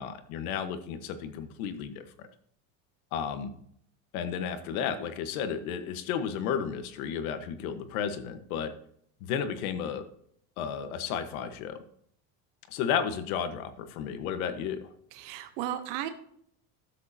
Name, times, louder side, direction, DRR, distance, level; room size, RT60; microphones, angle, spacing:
voice 1, 0.0-2.3 3.1-3.5 4.1-8.7 9.2-10.1 10.6-11.8 12.7-14.9, left 8 dB, 80° left, 9 dB, 1.4 m, -33 dB
voice 2, 15.1-16.1, right 11 dB, 65° right, 9 dB, 1.1 m, -34 dB
13.0 x 7.6 x 2.8 m, 0.67 s
cardioid pair, 155°, 42 cm